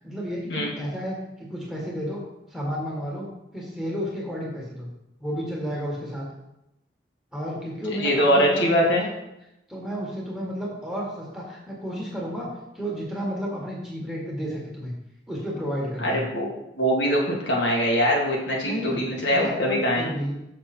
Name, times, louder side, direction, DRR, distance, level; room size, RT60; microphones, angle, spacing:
voice 1, 0.0-2.2 2.5-4.9 5.2-6.3 7.3-9.1 9.7-12.5 12.7-14.9 15.3-16.2 18.6-19.0 19.3-20.3, equal, 5° right, -4 dB, 1.8 m, -32 dB
voice 2, 7.9-9.0 16.0-16.5 16.8-20.1, equal, 80° left, -2 dB, 2.0 m, -22 dB
6.7 x 6.3 x 4.4 m, 0.87 s
head